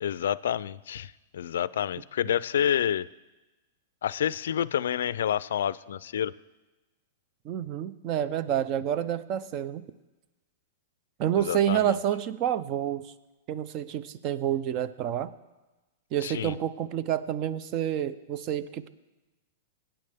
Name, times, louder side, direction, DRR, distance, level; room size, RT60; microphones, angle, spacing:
voice 1, 0.0-3.1 4.0-6.3 11.4-12.0 16.2-16.6, left 9 dB, 80° left, 20 dB, 0.3 m, -28 dB
voice 2, 7.4-9.8 11.2-13.1 13.5-15.3 16.1-18.9, right 10 dB, 40° right, 14 dB, 0.6 m, -28 dB
20.0 x 9.0 x 3.5 m, 1.1 s
hypercardioid pair, 135°, 0 cm